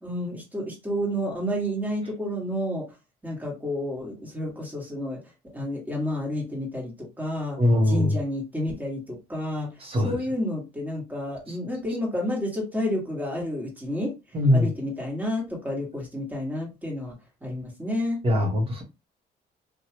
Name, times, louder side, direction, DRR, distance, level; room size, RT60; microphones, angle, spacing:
voice 1, 0.0-2.9 3.2-5.2 5.5-9.7 10.0-14.1 14.5-17.1 17.4-18.2, left 1 dB, 10° right, 1.5 m, -30 dB
voice 2, 7.6-8.2 9.8-10.2 11.5-11.6 14.3-14.7 18.2-18.8, left 1 dB, 35° right, 1.0 m, -22 dB
2.8 x 2.3 x 2.9 m
cardioid pair, 110°, 17 cm